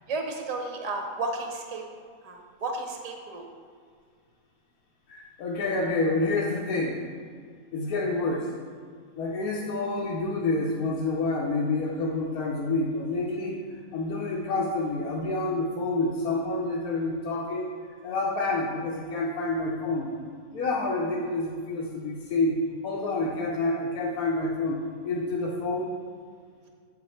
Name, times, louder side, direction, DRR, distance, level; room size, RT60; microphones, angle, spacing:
voice 1, 0.1-1.8 2.2-3.5, right 3 dB, 35° right, 3 dB, 0.6 m, -33 dB
voice 2, 5.1-7.0 7.7-8.5 9.2-13.6 13.9-17.7 18.0-20.1 20.5-25.9, left 2 dB, 80° left, -4 dB, 1.2 m, -28 dB
8.5 x 4.2 x 4.3 m, 2.1 s
omnidirectional pair, 1.5 m